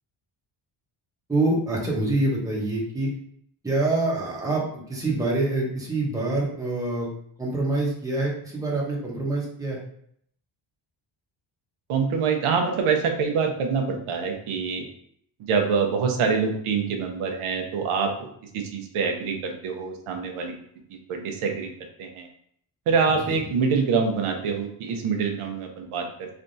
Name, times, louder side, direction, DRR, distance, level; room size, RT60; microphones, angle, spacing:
voice 1, 1.3-3.1 3.6-4.6 4.9-7.1 7.4-9.8 23.2-23.5, right 2 dB, 5° right, -4 dB, 1.0 m, -25 dB
voice 2, 11.9-14.9 15.5-20.5 21.1-21.7 22.0-22.3 22.9-26.3, right 5 dB, 85° right, 3 dB, 0.9 m, -25 dB
4.2 x 3.4 x 2.7 m, 0.66 s
cardioid pair, 165°, 49 cm